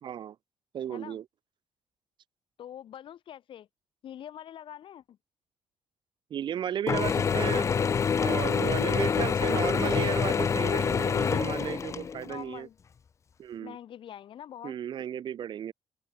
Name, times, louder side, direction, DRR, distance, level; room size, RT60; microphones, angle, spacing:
voice 1, 0.0-0.3 0.7-1.2 6.3-7.7 8.2-12.7 13.4-13.8 14.6-15.7, right 9 dB, 55° right, 0.8 m, -34 dB
voice 2, 0.9-1.2 2.6-3.7 4.0-5.2 8.8-9.6 12.2-12.8 13.6-14.8, left 10 dB, 65° left, 2.0 m, -44 dB
Mechanisms / Drill, 6.9-12.4, left 6 dB, 30° left, 0.4 m, -26 dB
open air
cardioid pair, 135°, 10 cm